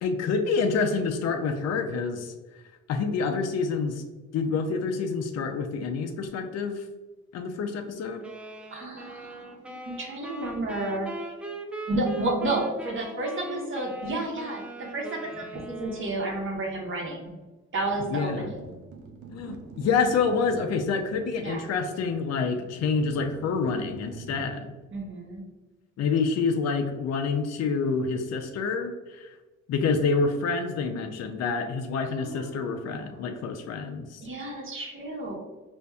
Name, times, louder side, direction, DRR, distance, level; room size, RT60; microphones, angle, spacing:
voice 1, 0.0-2.3 2.9-4.0 4.3-6.8 7.3-8.2 18.1-18.5 19.3-24.7 26.0-29.3 29.7-34.2, left 4 dB, 60° left, 5 dB, 0.5 m, -27 dB
sound 1, 8.2-16.6, right 2 dB, 5° right, 0.4 m, -40 dB
voice 2, 8.7-9.6 9.8-11.1 11.9-17.3 17.7-18.7 21.4-21.6 24.9-25.4 32.1-33.2 34.2-35.4, right 2 dB, 40° right, 0 dB, 1.1 m, -31 dB
sound 2, 17.8-24.5, right 5 dB, 75° right, 0.6 m, -46 dB
5.1 x 2.6 x 2.3 m, 1.2 s
cardioid pair, 90°, 30 cm